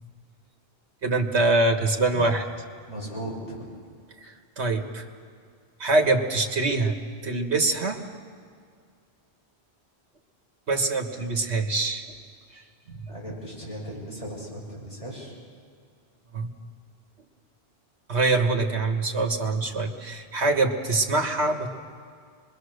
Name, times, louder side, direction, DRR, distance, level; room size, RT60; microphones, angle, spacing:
voice 1, 1.0-2.5 4.2-5.0 5.8-6.9 7.2-8.0 10.7-12.0 12.5-12.6 12.9-13.0 16.3-16.5 18.1-21.7, right 3 dB, 80° right, 4 dB, 1.8 m, -24 dB
voice 2, 2.9-3.7 13.1-15.3, right 1 dB, 30° left, -4 dB, 6.6 m, -37 dB
25.5 x 21.5 x 6.6 m, 2.2 s
omnidirectional pair, 1.1 m